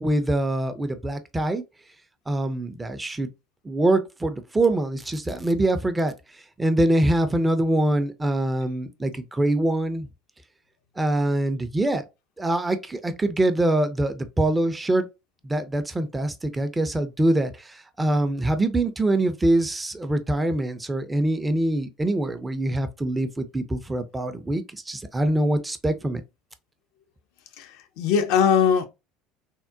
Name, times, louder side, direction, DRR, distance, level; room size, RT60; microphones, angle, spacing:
voice 1, 0.0-1.6 2.3-3.3 3.7-6.1 6.6-10.1 11.0-12.1 12.4-15.1 15.4-17.7 18.0-26.2, right 1 dB, 15° right, 0.4 m, -24 dB
voice 2, 27.6-28.9, left 7 dB, 55° left, 0.4 m, -21 dB
3.5 x 2.0 x 2.5 m
figure-of-eight pair, 65°, 0 cm